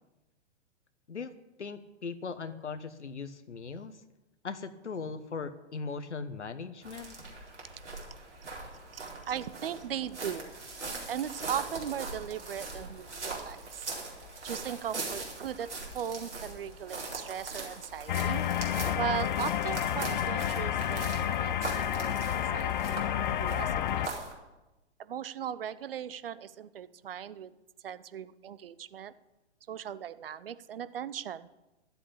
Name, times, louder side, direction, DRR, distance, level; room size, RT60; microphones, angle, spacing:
voice 1, 1.6-4.0 4.4-7.2, left 5 dB, 75° left, 11 dB, 1.1 m, -39 dB
sound 1, 6.8-24.3, right 3 dB, 75° right, 4.5 m, -41 dB
voice 2, 8.9-10.6 11.1-13.9 14.4-18.4 18.9-22.2 22.5-24.1 25.0-27.5 27.8-29.1 29.7-31.5, right 9 dB, 55° right, 15 dB, 0.8 m, -38 dB
sound 2, 18.1-24.1, left 10 dB, 45° left, 0.6 m, -30 dB
12.5 x 8.0 x 8.7 m, 1.0 s
figure-of-eight pair, 115°, 35 cm